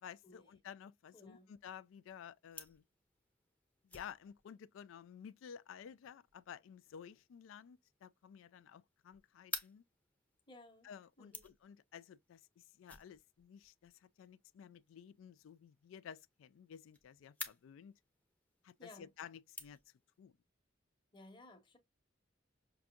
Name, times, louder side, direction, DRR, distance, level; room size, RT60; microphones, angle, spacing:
voice 1, 0.0-2.8 3.8-9.8 10.8-17.9 18.6-19.8 20.2-20.3, left 8 dB, 80° left, 0.3 m, -53 dB
voice 2, 1.1-1.5 10.5-10.9 11.2-11.4 18.8-19.1 21.1-21.8, left 2 dB, 25° left, 1.0 m, -57 dB
sound 1, 1.1-20.2, left 2 dB, 10° left, 0.7 m, -55 dB
5.7 x 2.6 x 2.4 m
head